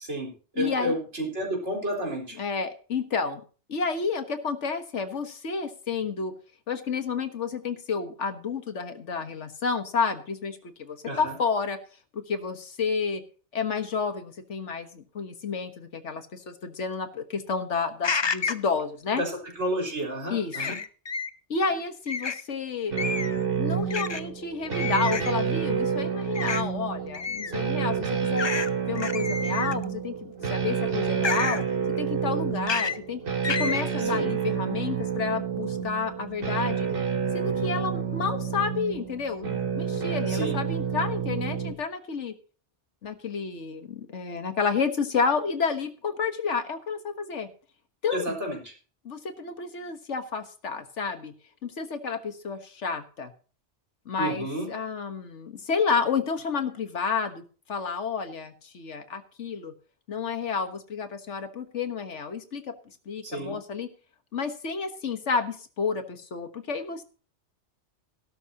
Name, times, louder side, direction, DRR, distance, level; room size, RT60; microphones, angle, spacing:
voice 1, 0.0-2.4 11.0-11.4 19.2-20.8 34.0-34.3 40.3-40.6 48.1-48.7 54.2-54.7 63.2-63.5, right 1 dB, 80° right, 0 dB, 4.4 m, -31 dB
voice 2, 0.6-0.9 2.4-3.4 3.7-6.3 6.7-11.8 12.1-13.2 13.5-19.2 20.3-20.6 21.5-22.9 23.4-28.5 28.9-31.6 32.0-33.2 33.6-36.9 37.3-42.3 43.0-47.5 48.0-48.4 49.1-51.3 51.6-53.3 54.1-59.7 60.1-62.7 63.1-63.9 64.3-67.0, left 5 dB, 90° left, 8 dB, 1.7 m, -30 dB
sound 1, 18.0-18.7 20.5-21.3 22.1-22.4 23.0-23.4 23.9-24.2 24.7-25.3 26.4-26.6 27.1-27.5 28.4-28.7 29.0-29.8 31.2-31.6 32.7-33.0 33.4-33.8, left 5 dB, 35° left, 0.5 m, -29 dB
sound 2, 22.9-41.7, right 7 dB, 50° right, 1.5 m, -29 dB
17.5 x 11.5 x 2.9 m, 0.38 s
omnidirectional pair, 1.2 m